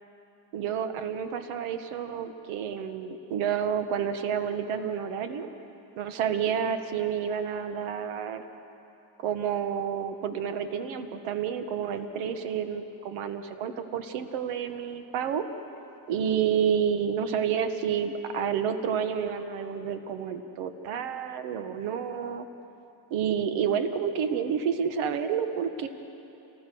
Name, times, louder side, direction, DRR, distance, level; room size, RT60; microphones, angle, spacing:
voice 1, 0.5-5.5 6.0-8.4 9.2-15.4 16.1-22.5 23.1-25.9, right 8 dB, 75° right, 8 dB, 1.5 m, -29 dB
29.0 x 19.5 x 6.3 m, 3.0 s
cardioid pair, 155°, 50 cm